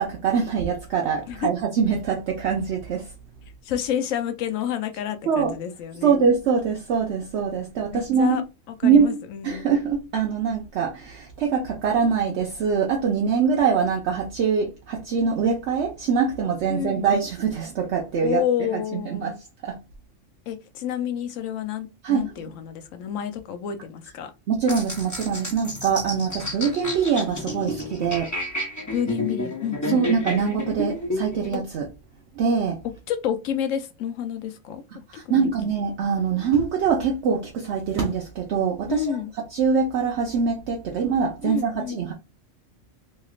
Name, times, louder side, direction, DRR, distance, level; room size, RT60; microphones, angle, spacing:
voice 1, 0.0-3.1 5.3-5.5 6.0-8.4 8.8-9.1 9.4-18.4 19.2-19.3 19.6-19.8 22.0-22.3 24.5-28.3 29.9-31.9 32.4-32.8 35.1-39.2 39.5-42.1, right 6 dB, 65° right, 0.9 m, -23 dB
voice 2, 3.6-6.2 7.9-9.7 16.7-17.1 18.2-19.4 20.5-24.3 28.9-30.0 33.1-35.5 38.9-39.3 41.4-42.0, left 9 dB, 80° left, 1.0 m, -29 dB
sound 1, 24.7-31.6, left 1 dB, 20° left, 0.6 m, -31 dB
3.2 x 2.8 x 2.4 m
omnidirectional pair, 1.3 m